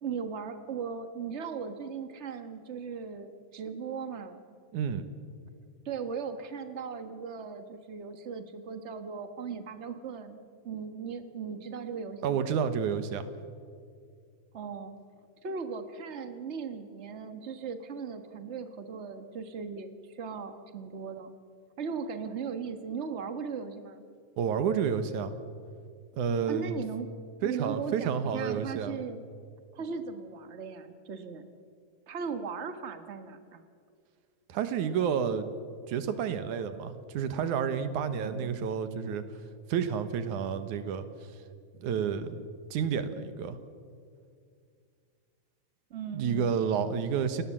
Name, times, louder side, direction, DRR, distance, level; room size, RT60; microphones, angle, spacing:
voice 1, 0.0-4.4 5.8-10.4 10.6-12.6 14.5-14.9 15.4-21.3 21.8-24.0 26.5-27.1 27.4-29.2 29.7-31.5 32.1-33.6 38.1-38.6 45.9-46.6, right 6 dB, 60° right, 9 dB, 0.7 m, -38 dB
voice 2, 4.7-5.1 12.2-13.2 24.4-25.3 26.2-26.7 27.4-29.0 34.5-35.5 35.9-39.2 39.7-41.1 41.8-43.6 46.1-47.4, right 7 dB, 85° right, 11 dB, 2.7 m, -30 dB
29.0 x 18.5 x 7.5 m, 2.2 s
omnidirectional pair, 3.4 m